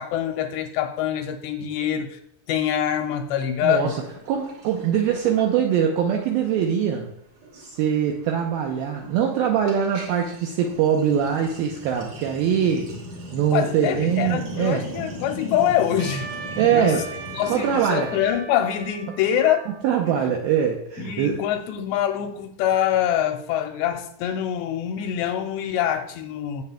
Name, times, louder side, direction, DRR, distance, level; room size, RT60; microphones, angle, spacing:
voice 1, 0.0-2.2 2.5-4.0 13.5-16.3 16.7-17.0 17.3-19.7 20.1-20.2 21.0-26.6, left 10 dB, 85° left, 6 dB, 2.7 m, -25 dB
voice 2, 3.6-4.0 4.3-7.1 7.5-12.9 13.3-14.9 16.6-17.1 17.5-18.1 19.8-21.4, right 8 dB, 80° right, 2 dB, 2.2 m, -22 dB
Sink (filling or washing), 3.7-5.9 6.2-6.5 6.8-18.2, equal, 40° right, 2.4 m, -38 dB
Trumpet, 16.0-20.4, right 5 dB, 60° right, 2.3 m, -39 dB
16.5 x 7.2 x 2.2 m, 0.75 s
omnidirectional pair, 5.1 m